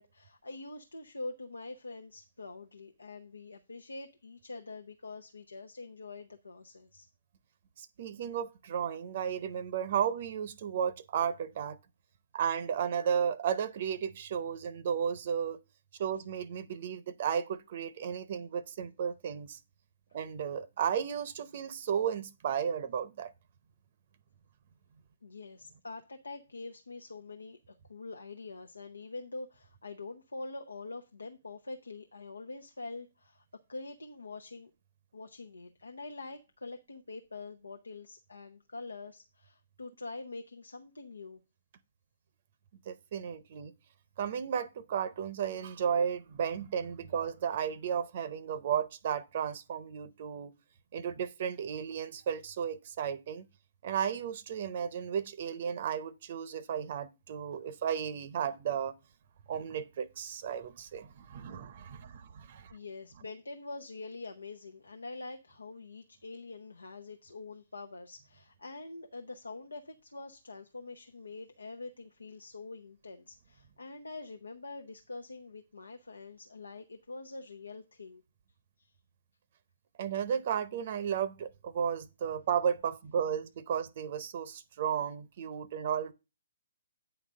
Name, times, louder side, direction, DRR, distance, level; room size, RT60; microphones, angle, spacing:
voice 1, 0.0-7.1 25.2-33.4 33.7-34.7 35.1-41.4 62.7-78.2 78.8-78.9, left 3 dB, 90° left, 0.8 m, -45 dB
voice 2, 7.8-11.8 12.3-15.6 16.0-19.6 20.1-23.3 42.9-43.7 44.2-50.5 50.9-53.5 53.8-58.9 59.5-62.7 80.0-86.1, right 8 dB, 50° right, 0.6 m, -34 dB
8.9 x 4.0 x 6.2 m
hypercardioid pair, 140°, 0 cm